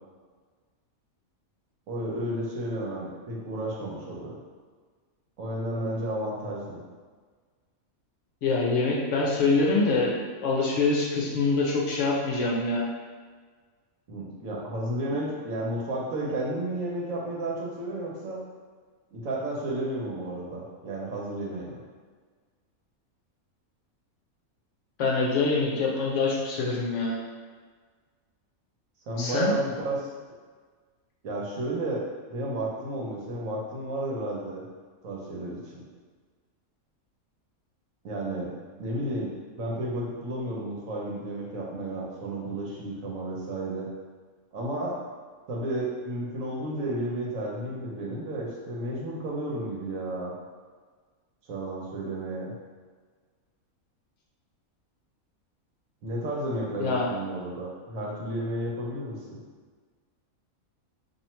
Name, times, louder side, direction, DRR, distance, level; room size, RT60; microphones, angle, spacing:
voice 1, 1.9-4.4 5.4-6.8 14.1-18.4 19.1-21.8 29.1-30.1 31.2-32.0 32.3-34.6 35.0-35.8 38.0-38.5 38.8-43.9 44.5-45.0 45.5-50.3 51.5-52.5 56.0-59.4, right 1 dB, 70° right, -4 dB, 1.2 m, -32 dB
voice 2, 8.4-10.1 10.4-12.9 25.0-27.2 29.2-29.5 56.8-57.0, left 3 dB, 65° left, -3 dB, 0.9 m, -25 dB
2.9 x 2.7 x 4.3 m, 1.5 s
omnidirectional pair, 1.5 m